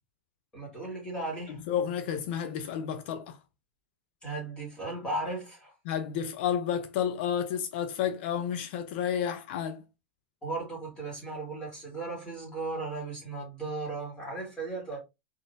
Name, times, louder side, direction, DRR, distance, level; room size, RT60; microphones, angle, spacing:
voice 1, 0.5-1.6 4.2-5.7 10.4-15.0, right 2 dB, 15° left, 2.4 m, -36 dB
voice 2, 1.5-3.4 5.8-9.8, left 8 dB, 60° left, 0.7 m, -31 dB
3.9 x 3.7 x 2.7 m
supercardioid pair, 140°, 6 cm